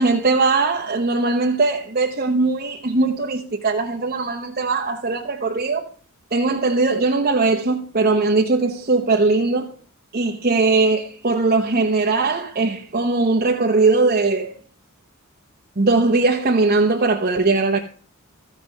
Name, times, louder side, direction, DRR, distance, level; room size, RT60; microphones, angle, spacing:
voice 1, 0.0-5.9 6.3-9.7 10.1-14.6 15.8-17.8, right 3 dB, 40° right, 1.0 m, -20 dB
15.0 x 5.2 x 5.2 m
head